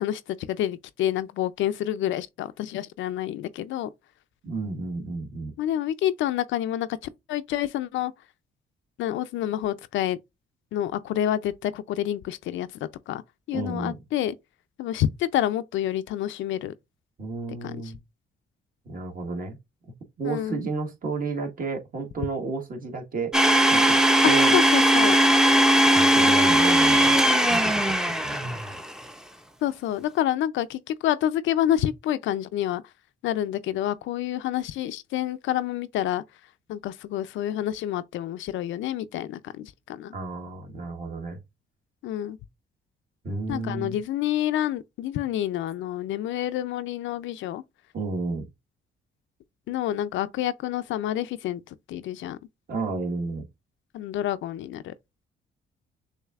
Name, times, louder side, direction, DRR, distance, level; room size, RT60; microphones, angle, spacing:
voice 1, 0.0-3.9 5.6-8.1 9.0-10.2 10.7-12.7 13.1-13.2 13.5-14.3 14.8-16.7 17.6-17.8 20.2-20.6 24.2-25.2 29.6-32.8 33.2-36.2 36.7-40.1 42.0-42.4 43.5-47.6 49.7-52.4 53.9-54.9, left 12 dB, 75° left, 0.4 m, -28 dB
voice 2, 4.4-5.5 13.5-14.0 17.2-18.0 18.8-19.6 20.2-23.4 23.7-24.5 25.9-27.2 27.5-28.0 28.2-28.6 40.1-41.4 43.2-44.0 47.9-48.5 52.7-53.5, right 3 dB, 45° right, 1.4 m, -32 dB
Domestic sounds home sounds, 23.3-28.8, right 1 dB, 5° right, 0.5 m, -19 dB
6.5 x 2.7 x 2.4 m
cardioid pair, 90°, 20 cm